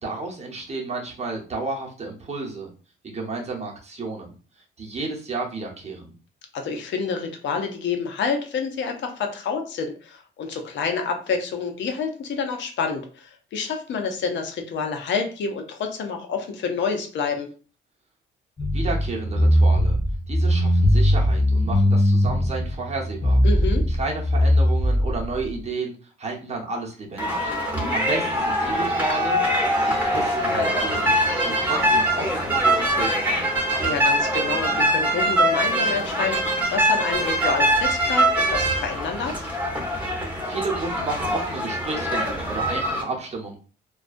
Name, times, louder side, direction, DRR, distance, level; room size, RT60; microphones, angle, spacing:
voice 1, 0.0-2.7 3.0-4.3 4.8-6.1 18.6-20.0 20.3-23.4 23.9-27.5 27.9-29.4 29.8-31.2 31.4-33.5 40.5-43.6, right 3 dB, 35° right, -2 dB, 0.8 m, -32 dB
voice 2, 6.5-17.5 23.4-23.9 33.8-39.5, left 5 dB, 65° left, 5 dB, 0.6 m, -28 dB
sound 1, 18.6-25.5, equal, 25° left, 0.6 m, -20 dB
sound 2, 27.2-43.0, right 1 dB, 10° right, 1.0 m, -23 dB
sound 3, 29.5-34.1, right 4 dB, 80° right, 0.7 m, -38 dB
2.3 x 2.2 x 2.5 m, 0.39 s
cardioid pair, 90°, 20 cm